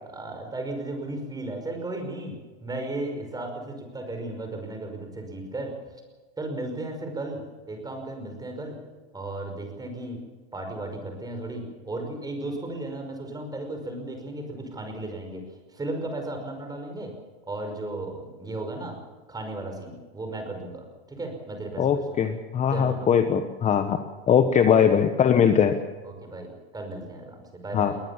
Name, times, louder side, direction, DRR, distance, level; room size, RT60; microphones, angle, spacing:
voice 1, 0.0-6.0 6.4-7.4 7.7-8.8 9.1-10.2 10.5-17.1 17.5-19.0 19.3-22.2 22.7-23.1 24.7-24.9 26.0-28.0, right 2 dB, 10° right, 4 dB, 5.4 m, -35 dB
voice 2, 21.8-24.0 24.3-25.7 27.7-27.9, left 8 dB, 20° left, 8 dB, 1.2 m, -21 dB
21.0 x 19.5 x 7.3 m, 1.3 s
supercardioid pair, 140°, 33 cm